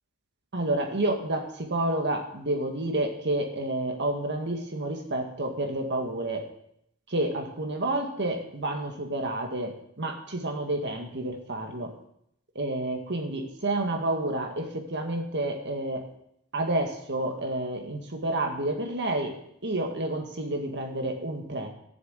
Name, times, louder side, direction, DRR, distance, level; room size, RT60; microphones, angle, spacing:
voice 1, 0.5-6.4 7.1-11.9 12.5-16.0 16.5-19.3 19.6-21.7, right 1 dB, 50° right, 3 dB, 1.8 m, -29 dB
15.5 x 7.1 x 8.2 m, 0.74 s
head